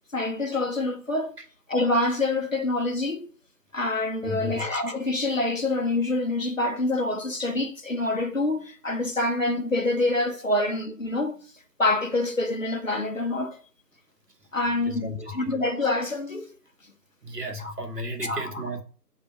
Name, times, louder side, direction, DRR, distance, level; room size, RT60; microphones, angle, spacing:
voice 1, 0.1-1.4 1.7-3.3 3.7-11.4 11.8-13.6 14.5-16.5 17.6-17.7 18.2-18.6, left 2 dB, 50° left, 1.1 m, -26 dB
voice 2, 4.2-4.6 14.8-15.6 17.2-18.8, equal, 70° right, 1.4 m, -34 dB
5.6 x 3.5 x 5.8 m
figure-of-eight pair, 175°, 49 cm